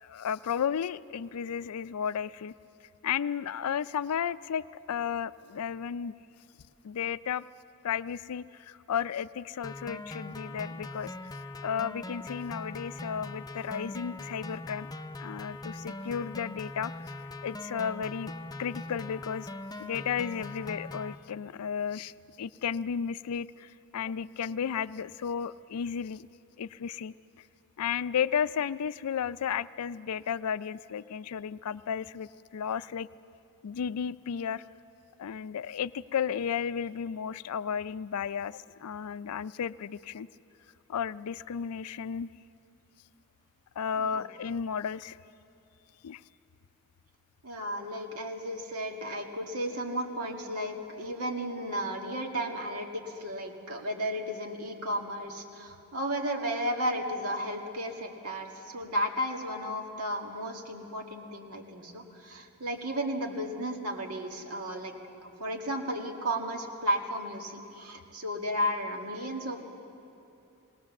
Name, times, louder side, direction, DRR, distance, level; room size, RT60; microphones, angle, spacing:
voice 1, 0.0-2.5 3.0-6.1 6.8-7.4 7.8-11.1 11.6-14.9 15.2-17.1 17.4-18.3 18.6-19.5 19.8-22.1 22.4-26.3 26.6-27.1 27.8-33.1 33.6-34.6 35.2-40.3 40.9-42.3 43.8-45.2 46.0-46.2, left 7 dB, 75° left, 17 dB, 0.4 m, -33 dB
sound 1, 9.6-21.2, left 2 dB, 15° left, 0.6 m, -41 dB
voice 2, 47.4-64.9 65.2-69.6, equal, 80° right, 2 dB, 2.0 m, -34 dB
20.0 x 18.5 x 7.1 m, 2.7 s
head